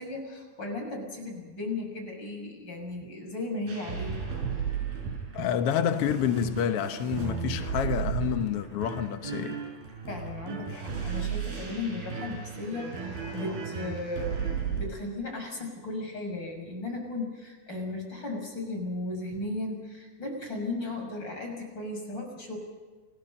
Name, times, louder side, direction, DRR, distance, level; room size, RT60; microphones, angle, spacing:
voice 1, 0.0-4.2 10.1-22.6, left 2 dB, 30° left, 7.0 m, -36 dB
sound 1, 3.7-14.8, right 6 dB, 70° right, 7.4 m, -34 dB
voice 2, 5.3-9.6, left 9 dB, 85° left, 1.3 m, -28 dB
28.5 x 21.0 x 5.5 m
omnidirectional pair, 4.3 m